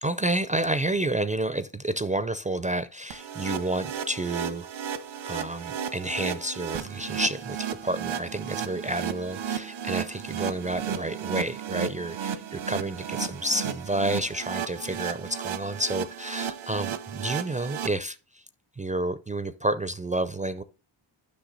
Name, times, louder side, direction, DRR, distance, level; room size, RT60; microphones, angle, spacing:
voice 1, 0.0-4.9 5.3-18.4 18.8-20.6, right 1 dB, 15° right, 0.4 m, -30 dB
sound 1, 3.1-17.9, right 8 dB, 80° right, 1.0 m, -34 dB
10.0 x 5.8 x 3.9 m
wide cardioid pair, 120°, 46 cm